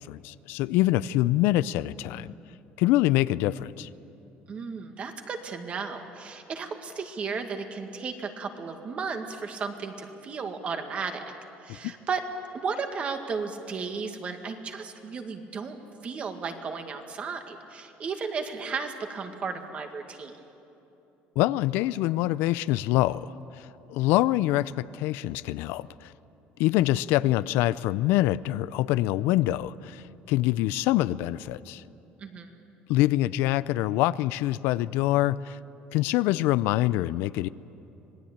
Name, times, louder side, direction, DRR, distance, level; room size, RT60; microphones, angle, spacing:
voice 1, 0.0-2.3 2.8-3.9 21.4-26.1 26.6-31.8 32.9-35.6 35.9-37.5, left 16 dB, 80° left, 17 dB, 0.5 m, -25 dB
voice 2, 4.5-11.2 11.6-12.2 12.5-15.8 16.0-20.3 32.2-32.5, right 5 dB, 35° right, 5 dB, 2.0 m, -34 dB
26.0 x 19.0 x 8.8 m, 2.9 s
cardioid pair, 145°, 4 cm